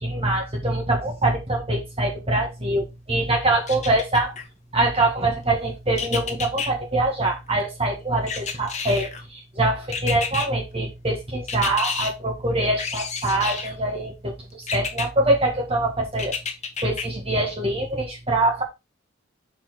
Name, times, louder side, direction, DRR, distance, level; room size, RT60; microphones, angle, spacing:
voice 1, 0.0-4.3 4.7-16.4 16.8-18.6, right 2 dB, 30° right, 1.7 m, -24 dB
sound 1, 3.7-4.4 6.0-6.7 8.3-9.2 9.9-10.5 11.5-12.1 12.8-13.7 14.7-15.1 16.2-17.0 17.5-17.6, left 5 dB, 35° left, 1.2 m, -29 dB
7.4 x 4.3 x 4.1 m
head